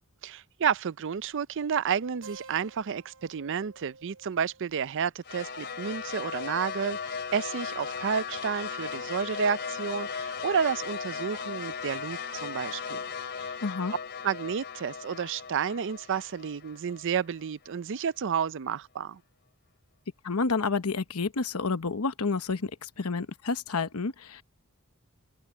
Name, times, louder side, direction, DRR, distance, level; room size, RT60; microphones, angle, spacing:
voice 1, 0.2-13.0 13.4-13.6 14.2-19.2, right 7 dB, 55° right, 0.5 m, -31 dB
Keyboard (musical), 2.2-7.2, right 3 dB, 75° right, 4.5 m, -54 dB
sound 1, 5.2-17.5, left 6 dB, 50° left, 3.0 m, -37 dB
voice 2, 13.6-13.9 20.2-24.4, left 4 dB, 70° left, 1.0 m, -29 dB
open air
head